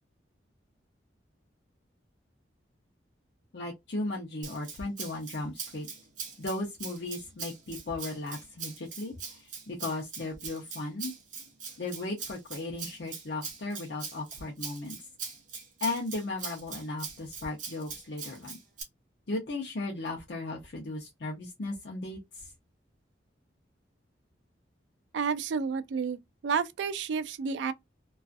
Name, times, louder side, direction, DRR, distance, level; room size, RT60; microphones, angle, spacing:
voice 1, 3.5-5.9 6.4-11.1 11.8-15.0 15.8-18.6 19.3-22.5, left 2 dB, 60° left, 0.6 m, -36 dB
Rattle (instrument), 4.4-18.8, right 5 dB, 45° right, 0.7 m, -42 dB
voice 2, 25.1-26.2 26.4-27.7, right 5 dB, 75° right, 0.3 m, -30 dB
2.4 x 2.4 x 2.3 m
head